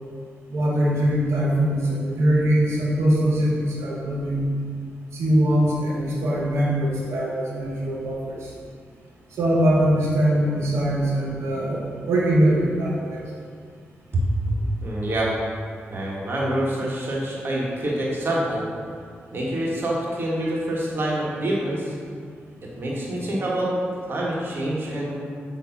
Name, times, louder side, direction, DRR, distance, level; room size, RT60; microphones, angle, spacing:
voice 1, 0.5-4.5 5.1-8.4 9.4-13.2, right 1 dB, 80° right, -4 dB, 1.4 m, -22 dB
voice 2, 14.1-15.4 15.9-18.7 19.3-21.9 22.8-23.7 24.1-25.1, right 1 dB, 55° right, -5 dB, 1.7 m, -26 dB
7.1 x 3.4 x 5.4 m, 2.1 s
cardioid pair, 75°, 4 cm